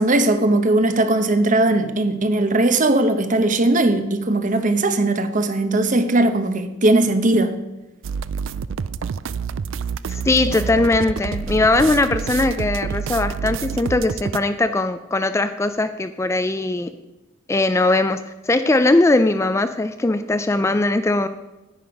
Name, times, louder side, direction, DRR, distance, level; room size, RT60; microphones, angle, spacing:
voice 1, 0.0-7.6, right 2 dB, 40° right, 0.8 m, -19 dB
sound 1, 8.0-14.4, right 6 dB, 70° right, 0.4 m, -27 dB
voice 2, 10.1-16.9 17.5-21.3, left 2 dB, 15° left, 0.3 m, -20 dB
10.5 x 9.4 x 5.2 m
head